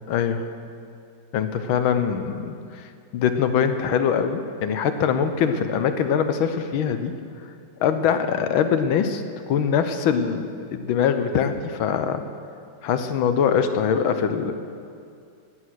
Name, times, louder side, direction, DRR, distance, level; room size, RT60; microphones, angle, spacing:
voice 1, 0.1-0.5 1.3-2.9 3.1-7.1 7.8-9.2 9.5-12.2 12.8-14.5, left 7 dB, 90° left, 9 dB, 1.6 m, -23 dB
16.5 x 9.7 x 6.3 m, 2.4 s
omnidirectional pair, 2.1 m